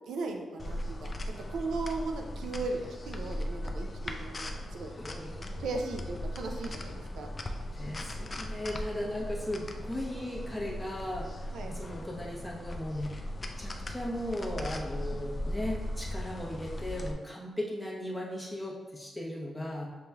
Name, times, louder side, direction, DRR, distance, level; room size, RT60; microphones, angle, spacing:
voice 1, 0.1-1.1 1.5-4.9 5.6-7.3 11.5-11.7, right 3 dB, 85° right, 3 dB, 0.4 m, -37 dB
sound 1, 0.6-17.1, left 1 dB, 35° left, 0.4 m, -38 dB
voice 2, 5.0-5.8 7.7-13.2 13.6-19.9, left 1 dB, 5° left, -4 dB, 1.0 m, -37 dB
6.6 x 3.1 x 2.3 m, 1.4 s
cardioid pair, 80°, 0 cm